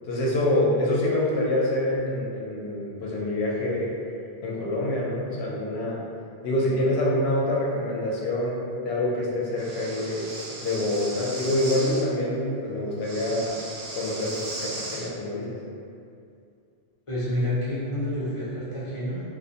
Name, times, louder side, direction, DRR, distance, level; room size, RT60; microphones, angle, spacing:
voice 1, 0.1-3.9 4.4-6.0 6.4-10.2 10.6-13.6 13.9-15.6, left 1 dB, 75° left, -4 dB, 0.8 m, -26 dB
Breathing, 9.6-12.0 13.0-15.1, right 2 dB, 85° right, 0.9 m, -37 dB
voice 2, 17.1-19.2, left 1 dB, 40° left, -9 dB, 0.6 m, -28 dB
2.3 x 2.1 x 2.6 m, 2.4 s
omnidirectional pair, 1.1 m